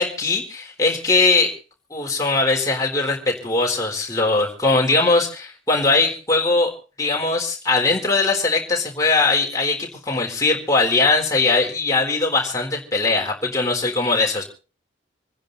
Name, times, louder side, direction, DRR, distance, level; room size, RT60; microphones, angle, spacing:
voice 1, 0.0-1.6 1.9-6.7 7.0-14.4, left 3 dB, 15° left, 0 dB, 4.0 m, -20 dB
27.5 x 10.5 x 4.1 m, 0.35 s
head